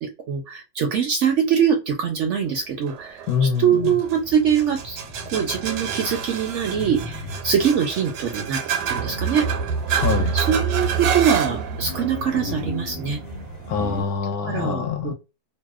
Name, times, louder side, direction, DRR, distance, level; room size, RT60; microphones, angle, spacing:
voice 1, 0.0-5.0 5.3-9.5 10.3-13.2 14.4-15.1, right 7 dB, 70° right, 0.7 m, -23 dB
sound 1, 2.9-14.2, right 6 dB, 90° right, 1.1 m, -28 dB
voice 2, 3.3-3.6 9.9-10.6 13.7-15.1, left 6 dB, 75° left, 1.0 m, -24 dB
sound 2, 4.0-14.0, left 1 dB, 45° left, 0.9 m, -37 dB
2.7 x 2.1 x 2.2 m
omnidirectional pair, 1.6 m